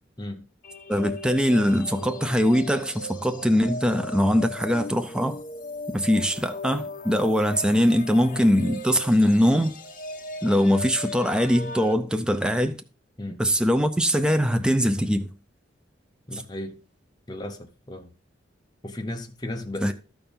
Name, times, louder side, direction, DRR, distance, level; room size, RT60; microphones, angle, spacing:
sound 1, 0.6-11.9, left 2 dB, 45° left, 1.1 m, -38 dB
voice 1, 0.9-5.4 5.9-9.7 10.4-12.8 13.4-15.3 16.3-16.4 19.8-19.9, equal, 5° right, 0.5 m, -22 dB
voice 2, 16.3-16.8 17.3-18.1 18.8-19.9, left 1 dB, 20° left, 0.8 m, -35 dB
13.0 x 4.4 x 5.2 m
head